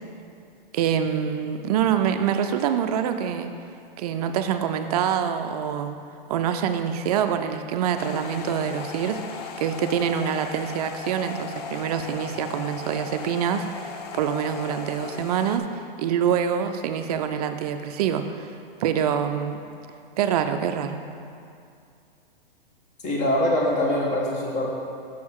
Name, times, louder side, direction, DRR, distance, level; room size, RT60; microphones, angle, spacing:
voice 1, 0.7-3.5 4.0-6.0 6.3-13.9 14.1-15.7 16.0-18.5 18.8-19.6 20.2-21.0, right 8 dB, 40° right, 8 dB, 0.5 m, -25 dB
sound 1, 8.0-15.6, left 6 dB, 45° left, 0.5 m, -37 dB
voice 2, 23.0-24.7, left 1 dB, 25° left, -2 dB, 1.3 m, -23 dB
6.3 x 5.4 x 4.7 m, 2.4 s
hypercardioid pair, 140°, 29 cm